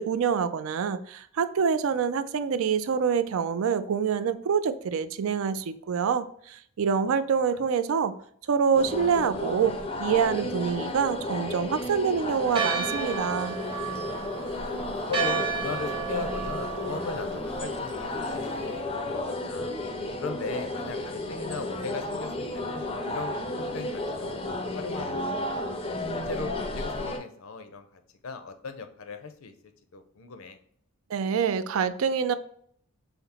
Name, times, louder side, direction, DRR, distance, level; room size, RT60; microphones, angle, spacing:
voice 1, 0.0-8.1 8.5-13.6 31.1-32.3, right 6 dB, 70° right, 0.3 m, -26 dB
voice 2, 7.4-7.7 14.6-19.2 19.5-19.7 20.2-25.7 26.1-29.5 29.9-30.6, left 4 dB, 70° left, 0.6 m, -38 dB
sound 1, 8.7-27.2, left 1 dB, 25° left, 0.4 m, -33 dB
Church bell, 12.5-18.8, right 5 dB, 25° right, 0.7 m, -33 dB
5.7 x 2.0 x 4.1 m
head